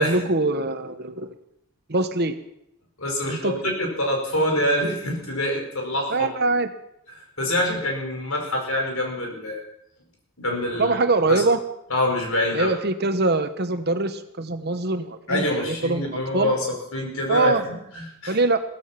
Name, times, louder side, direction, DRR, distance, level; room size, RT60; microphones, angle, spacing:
voice 1, 0.0-1.3 1.9-2.4 3.3-3.5 6.1-6.7 10.8-11.6 12.5-16.5 17.3-17.6 18.3-18.6, right 2 dB, 50° right, 9 dB, 1.2 m, -23 dB
voice 2, 3.0-6.3 7.4-9.6 10.4-11.0 11.3-11.4 11.9-12.7 15.3-18.4, left 1 dB, 75° left, 1 dB, 4.9 m, -25 dB
16.5 x 14.5 x 5.9 m, 0.78 s
head